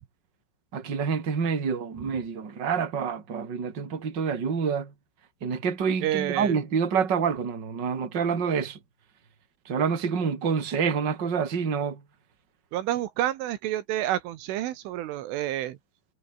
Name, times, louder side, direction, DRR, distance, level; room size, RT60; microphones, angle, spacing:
voice 1, 0.7-4.9 5.4-8.8 9.6-12.0, right 6 dB, 25° right, 3.0 m, -27 dB
voice 2, 6.0-6.6 12.7-15.8, right 13 dB, 80° right, 3.8 m, -29 dB
omnidirectional pair, 5.8 m